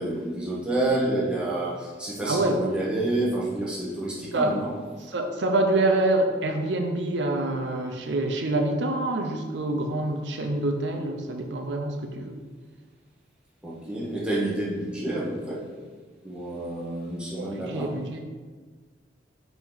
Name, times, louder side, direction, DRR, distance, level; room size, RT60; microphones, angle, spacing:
voice 1, 0.0-4.7 13.6-15.6 16.2-17.9, right 1 dB, 5° right, -7 dB, 1.1 m, -29 dB
voice 2, 2.3-2.6 4.3-4.6 5.1-12.4 17.4-18.2, right 2 dB, 85° right, 4 dB, 0.6 m, -26 dB
8.8 x 3.0 x 3.9 m, 1.5 s
head